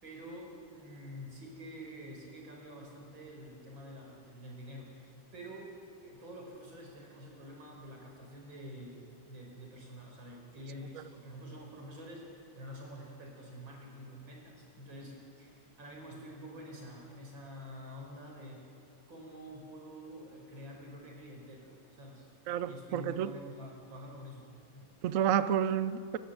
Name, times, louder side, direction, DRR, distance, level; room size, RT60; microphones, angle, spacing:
voice 1, 0.0-5.7 6.0-18.7 19.1-22.3 22.6-24.9, equal, 65° right, 0 dB, 5.6 m, -48 dB
voice 2, 22.5-23.3 25.0-26.2, right 9 dB, 85° right, 14 dB, 0.7 m, -30 dB
29.0 x 14.5 x 8.0 m, 2.4 s
omnidirectional pair, 2.3 m